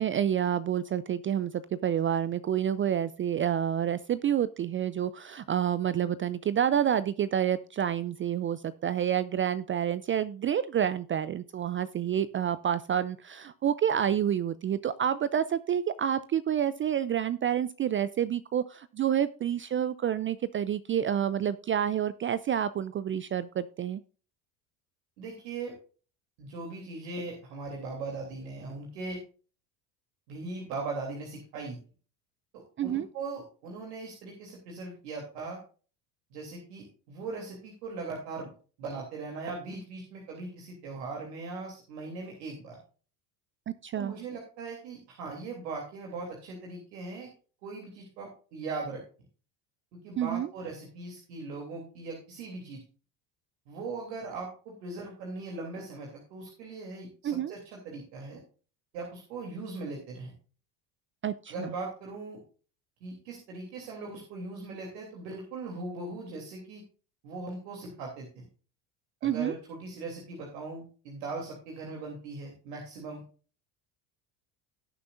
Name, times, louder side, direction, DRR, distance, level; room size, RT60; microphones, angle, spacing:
voice 1, 0.0-24.0 32.8-33.1 43.8-44.1 50.2-50.5 57.2-57.5 61.2-61.7 69.2-69.5, right 9 dB, 25° right, 16 dB, 0.4 m, -28 dB
voice 2, 25.2-25.7 26.4-29.2 30.3-31.8 32.5-35.6 36.3-38.5 38.8-42.8 44.0-47.3 47.6-49.0 49.9-52.8 53.7-58.4 58.9-60.3 61.5-62.4 63.0-66.8 67.2-68.4 69.2-73.2, right 3 dB, 80° right, 0 dB, 3.1 m, -39 dB
18.0 x 6.9 x 2.5 m, 0.38 s
hypercardioid pair, 80°, 49 cm